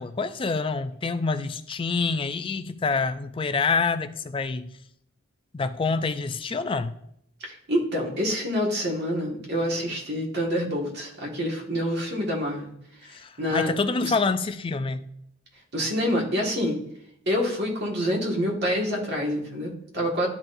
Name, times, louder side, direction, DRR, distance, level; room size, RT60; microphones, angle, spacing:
voice 1, 0.0-4.8 5.5-6.9 13.0-15.1, left 4 dB, 25° left, 0.3 m, -27 dB
voice 2, 7.4-12.7 13.0-13.7 14.0-14.1 15.7-16.8 17.3-20.3, equal, 50° right, 1.8 m, -27 dB
12.0 x 4.2 x 2.6 m
head